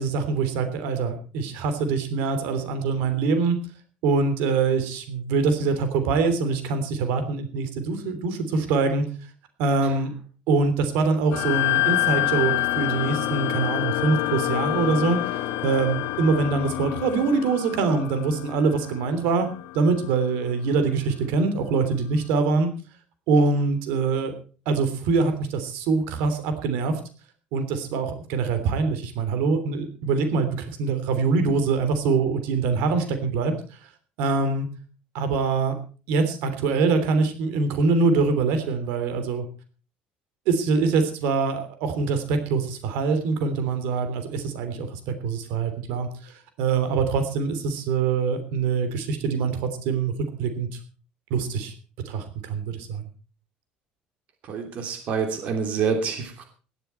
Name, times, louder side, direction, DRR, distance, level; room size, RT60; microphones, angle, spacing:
voice 1, 0.0-3.6 4.0-9.1 9.6-10.1 10.5-19.5 19.7-22.7 23.3-24.3 24.6-26.9 27.5-33.5 34.2-34.7 35.1-35.7 36.1-39.4 40.5-46.3 46.6-49.6 49.8-50.1 50.4-50.7 51.3-51.7 52.0-53.0, right 4 dB, 80° right, 9 dB, 3.2 m, -24 dB
sound 1, 11.3-20.1, left 17 dB, 70° left, 1.2 m, -27 dB
voice 2, 54.4-56.4, right 6 dB, 45° right, 5 dB, 2.9 m, -27 dB
18.0 x 12.0 x 4.5 m, 0.37 s
cardioid pair, 175°, 3 cm